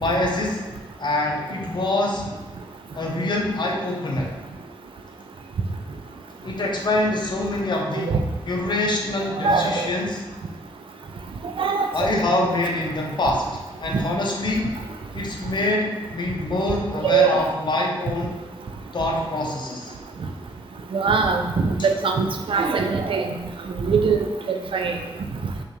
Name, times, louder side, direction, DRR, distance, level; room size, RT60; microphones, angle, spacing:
voice 1, 0.0-0.6 1.0-2.3 2.9-4.3 6.4-10.2 11.9-14.7 15.1-18.4 18.9-20.0, left 2 dB, 60° left, -1 dB, 0.7 m, -25 dB
voice 2, 9.4-9.8 11.6-12.1 13.9-14.0 17.0-17.4 20.9-23.3 23.8-25.0, right 5 dB, 80° right, 5 dB, 0.4 m, -22 dB
5.4 x 2.5 x 3.1 m, 1.1 s
wide cardioid pair, 95°, 9 cm